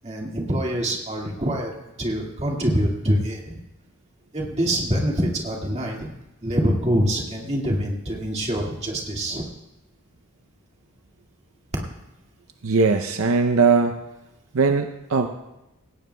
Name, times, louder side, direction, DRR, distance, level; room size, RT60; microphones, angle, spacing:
voice 1, 0.0-1.7 2.0-3.6 4.3-6.1 6.4-9.5, equal, 30° right, -1 dB, 2.0 m, -25 dB
voice 2, 12.6-14.0 14.5-15.3, right 4 dB, 70° right, 6 dB, 0.6 m, -19 dB
17.0 x 17.0 x 2.3 m, 0.96 s
head